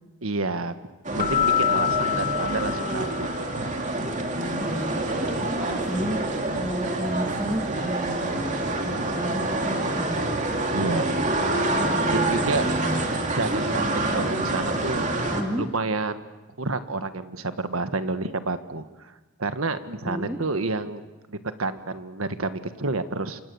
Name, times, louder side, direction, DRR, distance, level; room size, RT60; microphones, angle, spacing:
voice 1, 0.2-0.7 1.1-3.3 3.6-3.7 10.7-11.2 12.1-15.1 15.6-16.2 16.6-19.1 19.4-21.0 21.3-23.4, right 3 dB, 85° right, 10 dB, 1.5 m, -29 dB
sound 1, 1.0-15.4, right 2 dB, 35° right, 2.6 m, -27 dB
Keyboard (musical), 1.2-3.6, left 10 dB, 40° left, 1.8 m, -26 dB
voice 2, 4.3-5.0 5.5-10.2 11.7-13.0 15.3-15.6 20.0-20.4, equal, 10° right, 2 dB, 2.2 m, -32 dB
28.5 x 25.5 x 7.1 m, 1.1 s
head